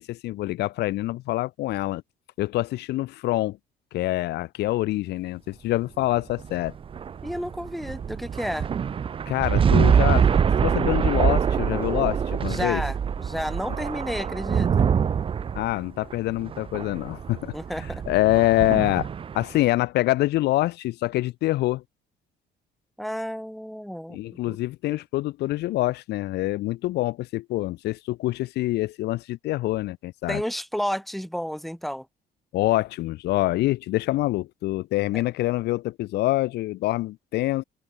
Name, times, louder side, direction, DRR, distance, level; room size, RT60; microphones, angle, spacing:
voice 1, 0.0-2.0 2.4-3.6 3.9-6.7 9.3-12.8 15.6-19.1 19.3-21.8 24.1-30.4 32.5-37.6, left 17 dB, 80° left, 1.9 m, -25 dB
sound 1, 6.0-19.6, right 7 dB, 30° right, 0.7 m, -24 dB
voice 2, 7.2-8.7 12.4-14.9 17.5-18.0 23.0-24.2 24.5-24.6 30.3-32.1 35.1-35.2, equal, ahead, 3.1 m, -31 dB
open air
cardioid pair, 110°, 17 cm